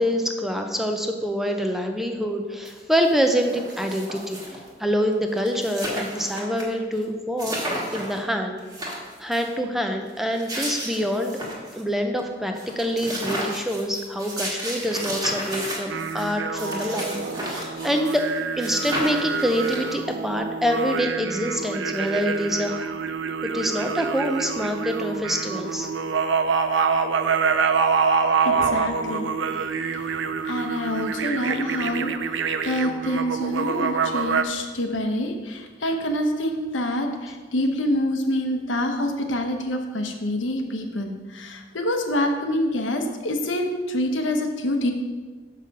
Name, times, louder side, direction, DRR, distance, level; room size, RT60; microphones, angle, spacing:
voice 1, 0.0-7.6 7.9-8.6 9.2-11.4 11.7-18.3 18.6-22.9 23.4-25.9, equal, ahead, 4 dB, 0.5 m, -26 dB
sound 1, 2.6-2.7 3.0-4.7 5.1-5.2 5.4-6.6 7.0-7.1 7.4-8.2 8.6-9.5 10.2-11.8 12.2-12.3 12.6-18.3 18.6-20.1, right 1 dB, 20° right, 1.5 m, -33 dB
sound 2, 15.9-34.4, right 5 dB, 75° right, 0.5 m, -26 dB
voice 2, 28.4-29.3 30.0-44.9, left 1 dB, 85° left, 4 dB, 0.9 m, -26 dB
6.6 x 5.6 x 5.3 m, 1.4 s
head